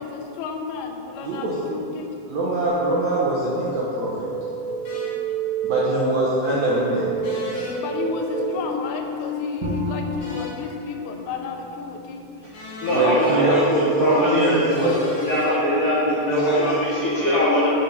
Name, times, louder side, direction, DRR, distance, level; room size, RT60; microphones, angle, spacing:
voice 1, 0.0-2.1 5.9-6.2 7.8-12.2, left 5 dB, 90° left, 4 dB, 2.6 m, -32 dB
voice 2, 1.2-1.6 2.3-4.3 5.6-7.1 12.9-15.2 16.3-16.7, right 2 dB, 75° right, -6 dB, 1.7 m, -23 dB
sound 1, 2.7-10.2, right 3 dB, 35° right, 1.4 m, -29 dB
sound 2, 4.8-5.1 7.2-7.8 10.2-10.6 12.5-13.4 14.7-15.5, left 2 dB, 55° left, 1.8 m, -37 dB
Bowed string instrument, 9.6-12.7, equal, 60° right, 1.8 m, -34 dB
voice 3, 12.8-17.7, left 1 dB, 70° left, -9 dB, 1.3 m, -21 dB
6.6 x 5.5 x 5.2 m, 2.9 s
omnidirectional pair, 4.4 m